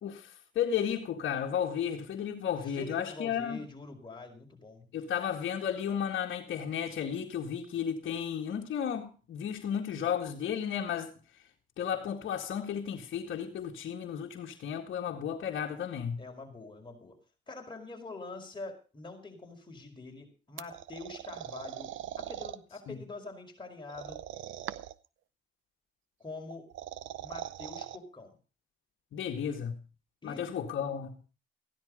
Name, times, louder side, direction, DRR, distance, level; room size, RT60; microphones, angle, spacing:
voice 1, 0.0-3.6 4.9-11.1 11.8-16.2 22.9-23.0 29.1-29.9 30.2-31.2, left 8 dB, 70° left, 2.0 m, -33 dB
voice 2, 2.6-4.9 16.2-17.2 17.5-24.2 26.2-26.7 27.2-28.4 30.2-30.5, left 3 dB, 25° left, 5.1 m, -45 dB
sound 1, 20.6-22.6 23.9-25.1 26.5-28.0, right 12 dB, 75° right, 0.8 m, -41 dB
15.5 x 10.5 x 5.2 m
cardioid pair, 90°, 20 cm